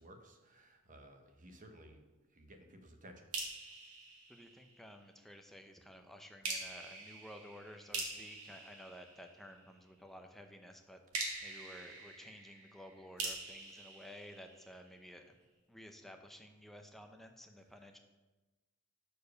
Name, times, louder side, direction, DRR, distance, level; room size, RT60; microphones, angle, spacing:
voice 1, 0.0-2.0 2.3-3.3, right 1 dB, 35° right, 5 dB, 1.0 m, -56 dB
sound 1, 3.3-5.1 6.4-9.8 11.1-15.0, right 3 dB, 90° right, 1.8 m, -44 dB
voice 2, 4.3-11.0 11.4-15.3 15.7-18.0, equal, ahead, 5 dB, 0.6 m, -53 dB
6.8 x 4.6 x 6.7 m, 1.2 s
head